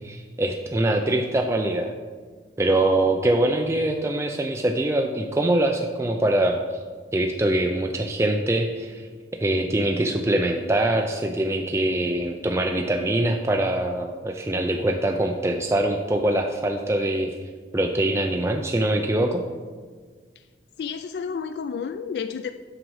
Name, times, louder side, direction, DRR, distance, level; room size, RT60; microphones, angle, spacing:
voice 1, 0.0-1.9 2.6-6.6 7.1-9.0 9.4-17.3 17.7-19.4, right 1 dB, 15° right, 3 dB, 0.4 m, -23 dB
voice 2, 20.8-22.5, left 6 dB, 65° left, 9 dB, 0.3 m, -31 dB
7.8 x 5.2 x 6.3 m, 1.5 s
head